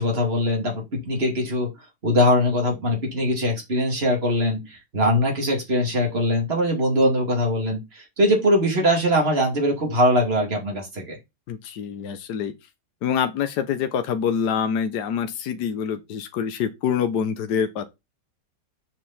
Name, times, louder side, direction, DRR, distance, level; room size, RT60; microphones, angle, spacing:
voice 1, 0.0-1.7 2.0-11.2, equal, 35° right, 2.9 m, -22 dB
voice 2, 11.5-12.5 13.0-17.8, left 7 dB, 75° left, 1.4 m, -25 dB
7.5 x 5.3 x 4.1 m
omnidirectional pair, 1.8 m